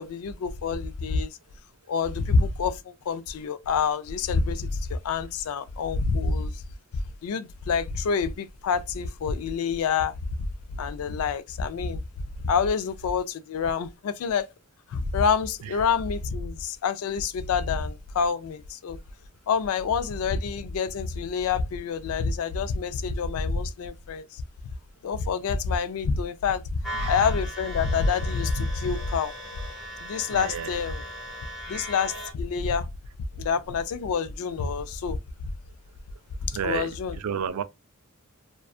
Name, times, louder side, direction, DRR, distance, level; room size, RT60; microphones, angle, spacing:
voice 1, 0.0-1.4 1.9-6.6 7.2-10.1 10.8-12.0 12.4-14.5 14.9-19.0 19.5-24.4 25.0-29.3 30.0-31.0 31.7-32.9 33.4-35.2 36.4-37.2, left 5 dB, 75° left, 0.3 m, -27 dB
sound 1, 26.8-32.3, equal, ahead, 0.7 m, -38 dB
voice 2, 30.3-30.8 36.5-36.9 37.2-37.6, right 8 dB, 90° right, 0.3 m, -31 dB
2.5 x 2.3 x 2.3 m
head